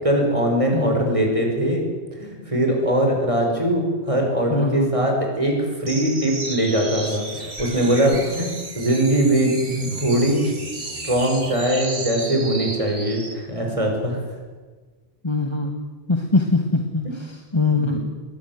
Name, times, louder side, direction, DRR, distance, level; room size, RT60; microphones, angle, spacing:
voice 1, 0.0-1.8 2.2-10.4 11.0-14.2 17.7-18.0, right 1 dB, 30° right, 1 dB, 5.8 m, -21 dB
voice 2, 4.5-4.9 15.2-15.7 16.1-18.0, left 3 dB, 25° left, 3 dB, 2.0 m, -22 dB
sound 1, 5.8-13.4, right 2 dB, 80° right, 3.2 m, -33 dB
22.0 x 19.0 x 9.6 m, 1.4 s
omnidirectional pair, 1.1 m